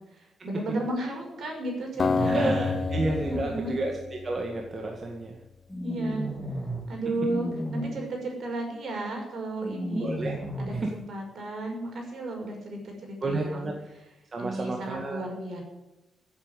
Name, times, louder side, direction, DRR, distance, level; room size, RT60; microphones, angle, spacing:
voice 1, 0.1-2.6 3.2-3.8 5.8-6.3 6.9-10.1 10.6-13.7 14.4-15.6, right 1 dB, 55° right, 1 dB, 6.2 m, -33 dB
sound 1, 1.9-3.4 5.7-6.8 7.1-7.8 9.6-10.8, equal, 5° left, 3.4 m, -33 dB
Acoustic guitar, 2.0-5.2, left 4 dB, 35° left, 0.7 m, -30 dB
voice 2, 2.2-3.9 4.2-5.4 10.0-10.4 10.7-10.9 13.2-13.7 14.3-15.2, right 2 dB, 30° right, 1 dB, 1.9 m, -31 dB
16.0 x 8.8 x 9.9 m, 0.99 s
wide cardioid pair, 170°, 0 cm